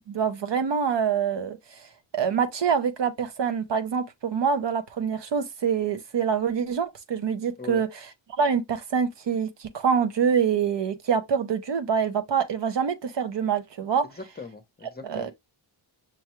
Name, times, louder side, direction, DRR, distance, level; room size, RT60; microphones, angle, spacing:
voice 1, 0.0-1.6 2.1-7.9 8.4-14.0 15.1-15.3, right 7 dB, 65° right, 0.8 m, -25 dB
voice 2, 14.0-15.3, left 5 dB, 20° left, 0.8 m, -40 dB
6.2 x 2.2 x 3.0 m
wide cardioid pair, 110°, 47 cm